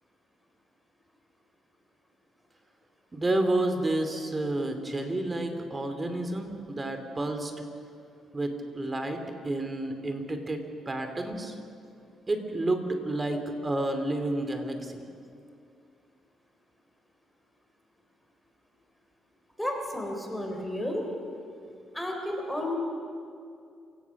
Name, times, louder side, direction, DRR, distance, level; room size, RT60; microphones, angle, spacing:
voice 1, 3.1-7.5 8.3-11.6 12.3-15.0, right 2 dB, 25° right, 6 dB, 2.9 m, -30 dB
voice 2, 19.6-21.1 21.9-22.8, left 1 dB, 5° left, 1 dB, 3.9 m, -32 dB
28.5 x 16.5 x 6.1 m, 2.5 s
cardioid pair, 90°, 0 cm